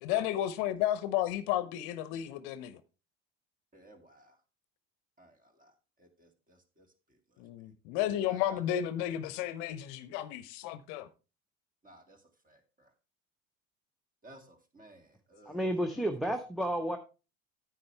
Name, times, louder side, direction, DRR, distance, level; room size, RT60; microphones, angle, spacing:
voice 1, 0.0-2.8 7.4-11.1, left 12 dB, 60° left, 0.9 m, -32 dB
voice 2, 3.7-4.4 5.2-5.7 6.0-6.9 7.3-7.4 8.2-8.6 11.8-12.9 14.2-16.0, right 1 dB, 20° right, 2.2 m, -57 dB
voice 3, 15.5-17.0, equal, ahead, 0.9 m, -31 dB
9.6 x 9.0 x 3.3 m
figure-of-eight pair, 70°, 37 cm